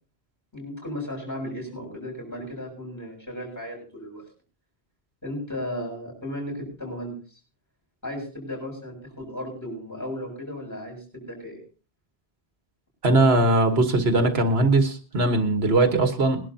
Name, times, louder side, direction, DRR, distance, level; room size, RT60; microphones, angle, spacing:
voice 1, 0.5-4.3 5.2-7.2 8.0-11.6, left 1 dB, 15° left, 0 dB, 7.0 m, -35 dB
voice 2, 13.0-16.4, right 2 dB, 80° right, 7 dB, 1.7 m, -20 dB
22.0 x 11.5 x 2.8 m, 0.37 s
omnidirectional pair, 1.1 m